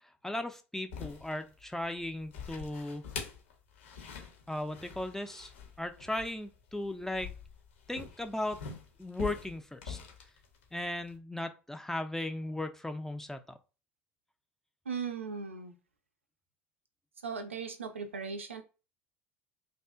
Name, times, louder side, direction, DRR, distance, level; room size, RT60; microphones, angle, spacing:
voice 1, 0.0-3.0 4.5-5.5 5.8-7.3 7.9-8.6 9.0-10.0 10.7-13.6, left 1 dB, 5° left, 0.3 m, -37 dB
sound 1, 0.9-11.2, left 6 dB, 75° left, 0.6 m, -45 dB
voice 2, 14.9-15.7 17.2-18.6, right 5 dB, 90° right, 0.4 m, -38 dB
2.6 x 2.4 x 2.3 m
figure-of-eight pair, 70°, 7 cm